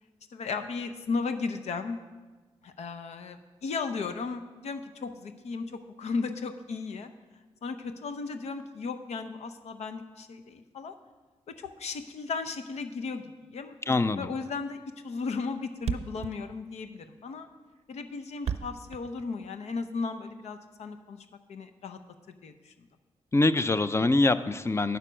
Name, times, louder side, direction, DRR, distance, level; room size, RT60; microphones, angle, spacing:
voice 1, 0.3-2.0 2.6-7.1 7.6-10.9 11.5-17.5 17.9-22.0 22.4-22.7, left 4 dB, 75° left, 8 dB, 0.7 m, -35 dB
voice 2, 13.9-14.3 23.3-25.0, left 2 dB, 25° left, 13 dB, 0.5 m, -24 dB
Thump thud, 14.4-14.6 14.9-15.0 15.2-15.3 15.5-15.6 15.8-19.8, right 8 dB, 65° right, 0.5 m, -35 dB
9.0 x 6.7 x 6.1 m, 1.3 s
supercardioid pair, 50°, 11 cm